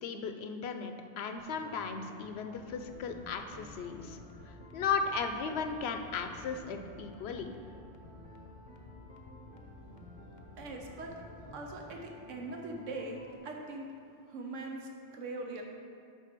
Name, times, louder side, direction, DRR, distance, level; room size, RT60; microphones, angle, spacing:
voice 1, 0.0-4.2 4.5-7.5, left 5 dB, 65° left, 6 dB, 0.8 m, -36 dB
sound 1, 1.4-13.4, equal, 10° right, 0.7 m, -53 dB
sound 2, 2.6-11.8, left 4 dB, 85° left, 1.1 m, -54 dB
voice 2, 10.6-11.1 11.5-13.9 14.3-15.6, right 2 dB, 85° right, 1 dB, 1.2 m, -41 dB
9.2 x 3.6 x 6.0 m, 2.3 s
omnidirectional pair, 1.2 m